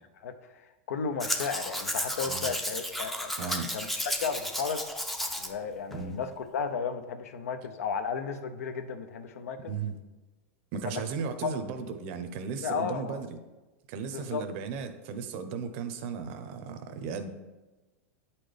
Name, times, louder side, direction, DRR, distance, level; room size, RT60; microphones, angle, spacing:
voice 1, 0.2-4.8 5.4-9.8 10.8-11.0 11.4-11.5 12.6-13.2 14.0-14.5, left 6 dB, 90° left, 9 dB, 0.6 m, -34 dB
Domestic sounds home sounds, 1.2-5.5 5.9-6.0, equal, ahead, 0.4 m, -33 dB
voice 2, 3.4-3.7 5.9-6.2 9.7-10.0 10.7-13.3 13.9-17.3, right 6 dB, 55° right, 9 dB, 0.7 m, -35 dB
8.7 x 4.2 x 3.3 m, 1.1 s
supercardioid pair, 145°, 8 cm